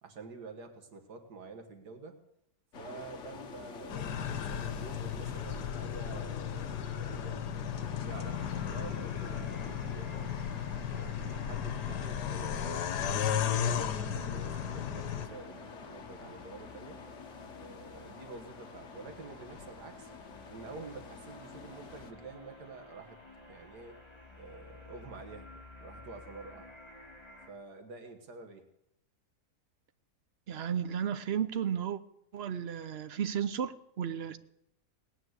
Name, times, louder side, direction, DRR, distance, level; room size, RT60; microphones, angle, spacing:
voice 1, 0.0-2.2 2.8-7.7 8.0-10.4 10.9-17.0 17.5-20.1 20.5-23.2 23.5-24.0 24.4-25.5 25.8-26.7 27.5-28.7, right 4 dB, 75° right, 6 dB, 2.0 m, -48 dB
sound 1, 2.7-22.1, left 5 dB, 50° left, 1.3 m, -48 dB
sound 2, 3.9-15.3, left 8 dB, 80° left, 1.4 m, -35 dB
sound 3, 8.1-27.5, left 2 dB, 15° left, 2.7 m, -52 dB
voice 2, 30.5-32.0 32.3-34.4, right 8 dB, 50° right, 12 dB, 0.8 m, -33 dB
18.0 x 9.2 x 8.0 m, 0.80 s
omnidirectional pair, 1.8 m